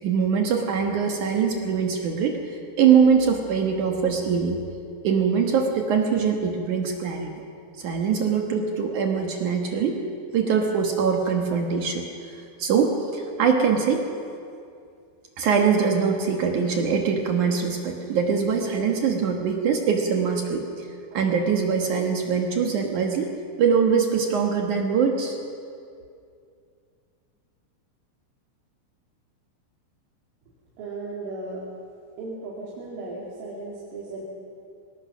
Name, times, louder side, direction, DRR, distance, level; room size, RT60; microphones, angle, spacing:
voice 1, 0.0-2.4 2.8-4.6 5.0-7.3 7.8-10.0 10.3-12.1 12.6-14.1 15.4-20.9 21.1-23.3 23.6-25.4, right 6 dB, 65° right, 2 dB, 2.0 m, -22 dB
voice 2, 30.8-31.6 32.2-34.2, right 2 dB, 85° right, -6 dB, 5.2 m, -35 dB
24.5 x 19.5 x 6.2 m, 2.4 s
omnidirectional pair, 5.5 m